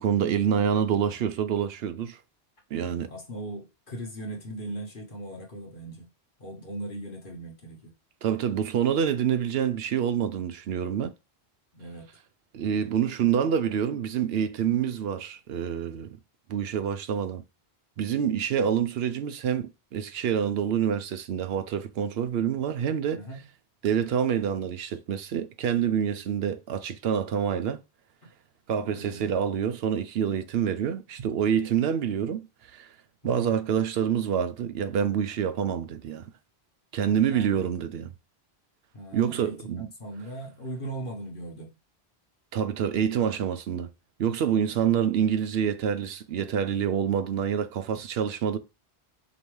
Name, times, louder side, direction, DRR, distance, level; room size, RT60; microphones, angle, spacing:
voice 1, 0.0-2.2 2.7-3.1 8.2-11.1 12.5-16.2 16.5-17.4 18.0-23.2 23.8-27.8 28.7-32.9 33.2-36.3 36.9-38.1 39.1-39.9 42.5-43.9 44.2-48.6, right 8 dB, 70° right, 0.8 m, -27 dB
voice 2, 2.7-6.1 6.4-7.9 11.7-12.1 23.1-23.4 28.2-28.3 28.7-29.3 33.2-33.5 37.0-37.6 38.9-41.7, right 1 dB, 55° left, 1.3 m, -39 dB
5.2 x 2.7 x 3.1 m
omnidirectional pair, 1.1 m